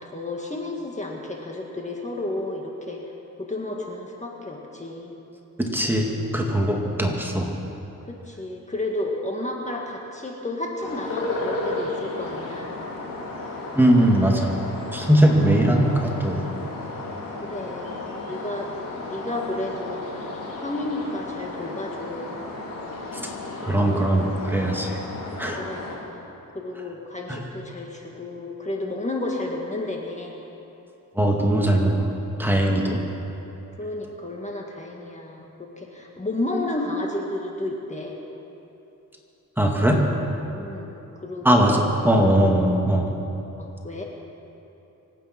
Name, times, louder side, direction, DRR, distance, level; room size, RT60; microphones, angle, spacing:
voice 1, 0.0-3.0 3.4-5.1 8.1-12.8 17.4-18.7 19.1-20.1 20.6-22.3 25.6-26.2 26.5-30.3 33.8-38.2 40.5-41.8 43.6-44.0, left 2 dB, 20° left, 0 dB, 1.9 m, -32 dB
voice 2, 5.6-7.5 13.7-14.5 14.9-16.4 23.1-23.2 23.6-25.0 25.4-25.6 27.3-27.4 31.2-32.1 32.4-33.0 39.6-40.0 41.4-43.1, right 1 dB, 5° right, 0 dB, 2.1 m, -20 dB
sound 1, 10.8-26.0, left 2 dB, 85° left, 3.2 m, -34 dB
25.0 x 9.1 x 6.0 m, 2.9 s
cardioid pair, 90°, 33 cm